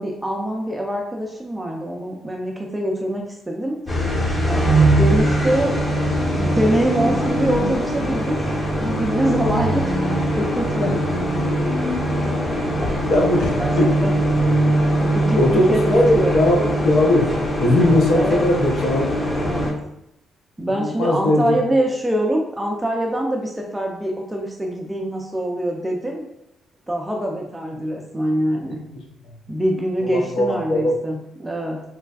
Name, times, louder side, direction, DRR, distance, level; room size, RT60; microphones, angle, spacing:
voice 1, 0.0-3.8 4.4-5.8 6.4-10.0 10.4-10.9 13.0-13.3 13.6-14.2 14.7-16.3 18.1-18.5 19.3-19.7 20.6-26.2 26.9-28.8 29.5-31.8, right 1 dB, 10° right, 0 dB, 0.4 m, -24 dB
sound 1, 3.9-19.7, right 1 dB, 25° left, 1.1 m, -21 dB
voice 2, 10.8-11.2 12.6-13.9 15.4-17.3 17.6-19.5 20.7-21.6 28.7-29.4 30.0-31.0, left 1 dB, 70° left, 1 dB, 0.7 m, -20 dB
3.2 x 3.2 x 2.3 m, 0.82 s
cardioid pair, 90°, 0 cm